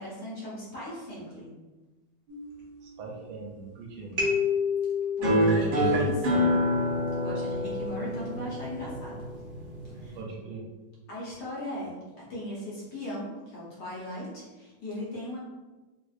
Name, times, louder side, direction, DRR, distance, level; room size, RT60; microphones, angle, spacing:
voice 1, 0.0-1.5 5.2-6.7 7.1-9.2 10.0-10.2 11.1-12.0 12.3-15.4, left 1 dB, 60° left, -6 dB, 1.3 m, -37 dB
sound 1, 2.3-3.7 4.2-6.8, left 6 dB, 40° right, 0.7 m, -31 dB
voice 2, 2.8-4.1 10.1-10.7, right 4 dB, 80° right, 0 dB, 1.4 m, -41 dB
sound 2, 5.2-10.2, equal, 55° right, 1.4 m, -27 dB
4.1 x 2.5 x 2.4 m, 1.2 s
omnidirectional pair, 2.4 m